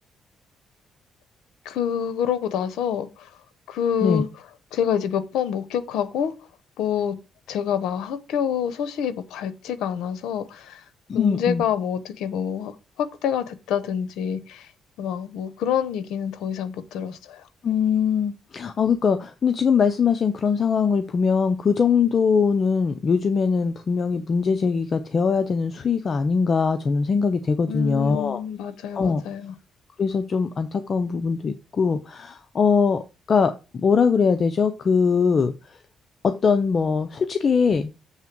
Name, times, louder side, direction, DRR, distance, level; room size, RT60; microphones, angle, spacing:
voice 1, 1.6-3.3 3.7-4.3 4.7-6.3 6.8-7.2 7.5-10.8 11.1-14.7 15.0-17.4 27.7-29.5, left 8 dB, 85° left, 0.8 m, -27 dB
voice 2, 11.1-11.6 17.6-28.4 28.9-29.2 30.0-33.0 33.3-35.8 36.2-37.9, left 5 dB, 45° left, 0.6 m, -21 dB
7.3 x 3.5 x 6.0 m
cardioid pair, 90°, 0 cm